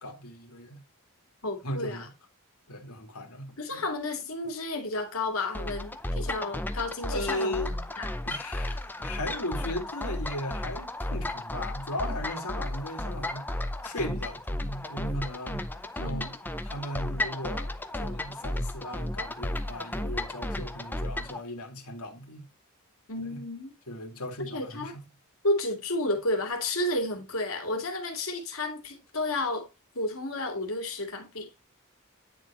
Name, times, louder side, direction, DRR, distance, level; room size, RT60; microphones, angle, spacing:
voice 1, 0.0-0.8 1.6-2.1 2.7-3.8 7.1-7.8 8.3-15.6 16.0-16.3 16.6-22.5 23.2-23.4 23.9-25.0, left 1 dB, 90° left, 2.0 m, -37 dB
voice 2, 1.4-2.1 3.6-7.6 8.0-8.1 16.0-16.3 23.1-23.7 24.5-24.9 25.4-29.7 29.9-31.5, left 2 dB, 70° left, 2.4 m, -31 dB
sound 1, 5.5-21.4, left 1 dB, 10° left, 0.6 m, -34 dB
9.9 x 4.1 x 4.1 m
head